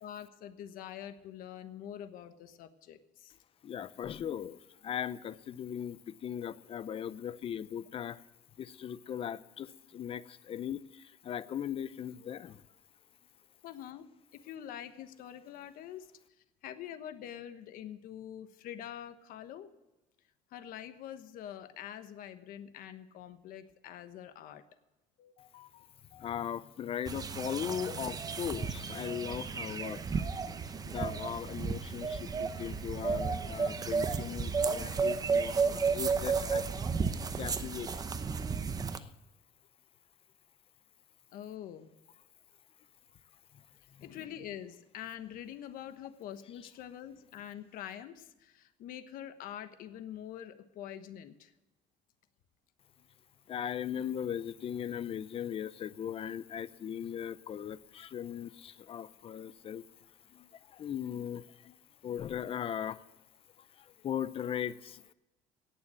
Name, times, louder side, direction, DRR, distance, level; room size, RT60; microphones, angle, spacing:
voice 1, 0.0-3.3 13.6-14.1 14.4-16.1 16.6-19.7 20.5-24.6 25.2-26.3 41.3-41.9 44.0-51.5, left 10 dB, 70° left, 10 dB, 1.2 m, -45 dB
voice 2, 3.6-8.2 8.6-12.6 26.2-30.3 30.8-36.7 37.1-37.9 38.9-39.1 43.5-43.6 43.9-44.2 53.5-59.8 60.3-61.8 62.0-63.0 63.6-65.1, left 9 dB, 40° left, 16 dB, 0.6 m, -39 dB
sound 1, 27.1-39.0, right 5 dB, 25° right, 0.8 m, -33 dB
18.0 x 7.0 x 7.7 m, 1.0 s
cardioid pair, 135°, 15 cm